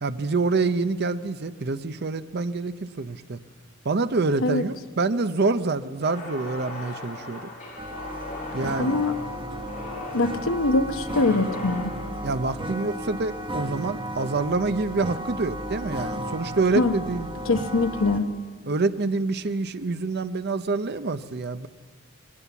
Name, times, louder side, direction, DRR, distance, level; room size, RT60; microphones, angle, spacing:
voice 1, 0.0-3.4 3.8-7.5 8.5-9.0 12.2-17.3 18.7-21.7, right 3 dB, 50° right, 12 dB, 0.7 m, -26 dB
sound 1, 6.0-14.2, left 2 dB, 40° left, 5.4 m, -39 dB
sound 2, 7.8-18.2, right 1 dB, 25° right, 1.2 m, -34 dB
voice 2, 8.8-9.2 9.9-11.9 16.7-16.9 17.4-18.3, left 2 dB, 80° left, 8 dB, 1.1 m, -23 dB
21.0 x 18.5 x 7.1 m, 1.5 s
head